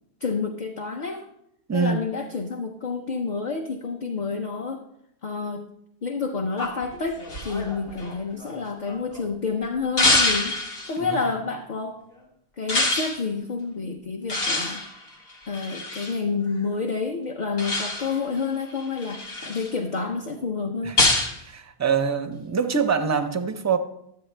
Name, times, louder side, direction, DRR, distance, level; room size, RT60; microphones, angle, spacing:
voice 1, 0.2-1.3 1.7-4.8 5.2-5.6 6.0-10.6 10.9-12.0 12.6-14.8 15.5-21.0, left 4 dB, 50° left, 2 dB, 0.7 m, -29 dB
voice 2, 1.7-2.0 11.0-11.2 19.4-19.5 20.8-21.0 21.4-23.8, right 6 dB, 25° right, 7 dB, 0.4 m, -25 dB
sound 1, 6.6-9.2 10.0-11.0 12.7-13.2 14.3-16.2 17.6-18.2 18.8-19.7 21.0-21.4, left 2 dB, 65° left, 1.3 m, -25 dB
11.5 x 7.8 x 3.2 m, 0.76 s
omnidirectional pair, 1.1 m